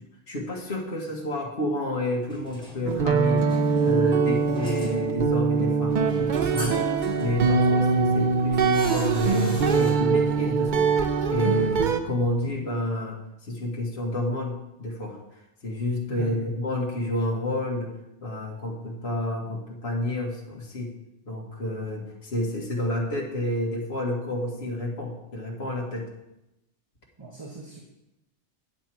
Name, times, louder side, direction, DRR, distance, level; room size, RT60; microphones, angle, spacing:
voice 1, 0.3-3.5 3.8-6.9 7.2-10.9 11.3-17.9 18.2-20.9 21.3-26.1, left 1 dB, 60° left, -3 dB, 1.8 m, -29 dB
sound 1, 2.2-9.9, equal, 5° left, 3.0 m, -41 dB
sound 2, 2.9-12.0, right 5 dB, 50° right, 0.7 m, -23 dB
voice 2, 16.1-16.5 27.2-27.8, right 6 dB, 25° right, 0 dB, 1.0 m, -39 dB
9.0 x 7.9 x 4.5 m, 0.90 s
omnidirectional pair, 1.2 m